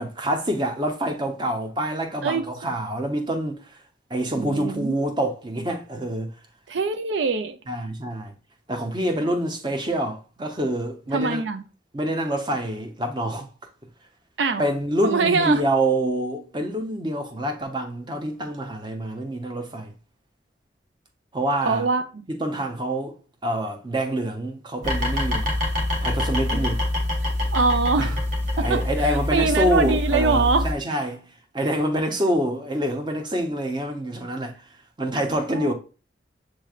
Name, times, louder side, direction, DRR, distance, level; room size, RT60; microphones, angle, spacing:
voice 1, 0.0-3.6 4.1-6.3 7.7-8.3 8.7-11.4 11.9-13.5 14.6-19.9 21.3-21.9 22.3-23.2 23.4-25.5 26.0-26.8 28.0-28.1 28.6-31.2 31.5-34.6 35.0-35.7, right 1 dB, 25° right, 0.7 m, -26 dB
voice 2, 4.4-5.1 6.7-7.6 11.1-11.6 14.4-14.6 15.0-15.6 21.7-22.3 27.5-28.2 28.6-30.7 35.5-35.7, right 4 dB, 80° right, 0.5 m, -23 dB
sound 1, 24.8-30.7, left 1 dB, 45° right, 1.2 m, -25 dB
7.2 x 3.2 x 2.3 m
head